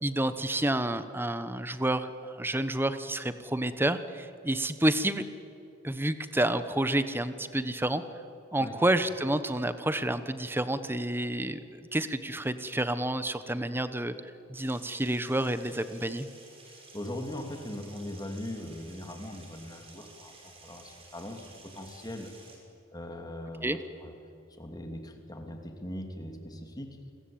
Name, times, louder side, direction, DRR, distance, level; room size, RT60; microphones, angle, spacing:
voice 1, 0.0-5.2 5.8-8.0 8.5-14.1 14.5-16.3 23.6-23.8, right 1 dB, 10° right, 11 dB, 1.1 m, -29 dB
sound 1, 14.5-22.6, right 3 dB, 30° right, 5.5 m, -53 dB
voice 2, 16.6-22.3 22.9-24.1 24.6-27.0, left 1 dB, 20° left, 4 dB, 2.8 m, -40 dB
29.0 x 22.0 x 8.7 m, 2.7 s
head